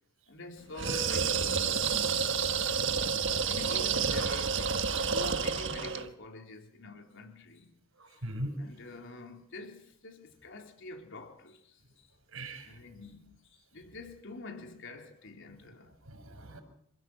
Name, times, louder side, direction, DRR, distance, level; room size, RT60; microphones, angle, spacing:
voice 1, 0.3-2.9 3.5-7.7 8.1-8.3 8.6-12.1 12.6-16.0, left 2 dB, 65° left, 4.1 m, -46 dB
sound 1, 0.7-6.1, right 6 dB, 65° right, 1.6 m, -29 dB
voice 2, 8.0-8.6 12.3-12.8 16.0-16.6, right 1 dB, 85° right, 5.8 m, -40 dB
27.5 x 15.5 x 8.1 m
head